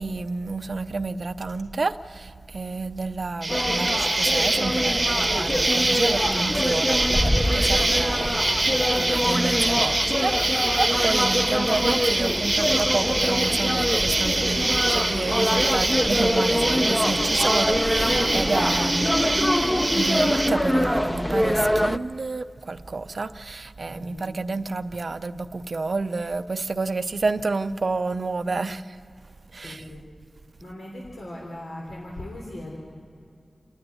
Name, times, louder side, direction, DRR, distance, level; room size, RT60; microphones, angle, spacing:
voice 1, 0.0-8.5 9.0-28.8 29.5-29.9, right 3 dB, 60° right, 0.5 m, -30 dB
Insect, 3.4-20.5, right 2 dB, 30° right, 0.9 m, -25 dB
sound 1, 3.5-22.0, equal, 10° left, 0.6 m, -25 dB
voice 2, 16.6-16.9 23.9-24.4 28.4-28.8 29.6-30.0 30.6-32.8, left 1 dB, 85° left, 3.5 m, -39 dB
28.5 x 9.8 x 9.8 m
wide cardioid pair, 75°, 0 cm